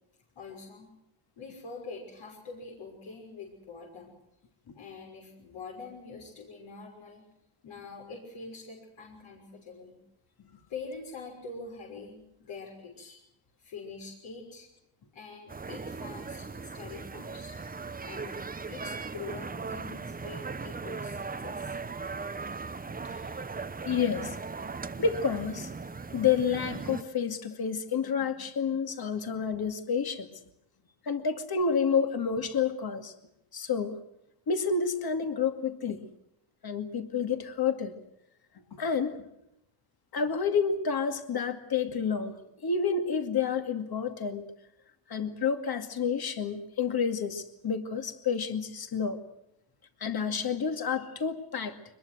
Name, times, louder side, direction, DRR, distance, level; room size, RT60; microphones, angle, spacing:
voice 1, 0.3-0.9 1.4-4.1 4.7-7.3 7.6-10.0 10.7-13.2 13.6-14.7 15.1-17.6 18.0-21.8, left 4 dB, 75° left, -1 dB, 6.4 m, -44 dB
sound 1, 15.5-27.0, right 4 dB, 20° right, 0.8 m, -38 dB
voice 2, 23.8-24.4 25.0-25.7 26.1-30.3 31.1-33.1 33.5-34.0 34.5-36.0 36.6-37.9 38.7-39.2 40.1-44.5 45.1-49.2 50.0-51.8, left 6 dB, 45° left, 7 dB, 2.4 m, -29 dB
23.5 x 21.0 x 7.8 m, 0.81 s
cardioid pair, 95°, 49 cm